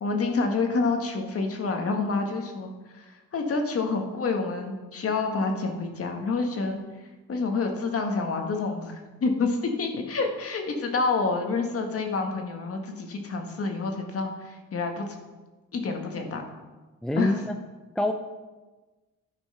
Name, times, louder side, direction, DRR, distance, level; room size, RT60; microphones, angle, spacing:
voice 1, 0.0-6.8 7.3-15.1 15.7-16.5 17.2-17.4, left 4 dB, 50° left, 3 dB, 1.6 m, -28 dB
voice 2, 17.0-17.6 18.0-18.1, left 1 dB, ahead, 6 dB, 0.5 m, -26 dB
11.5 x 4.5 x 5.6 m, 1.2 s
cardioid pair, 90°, 30 cm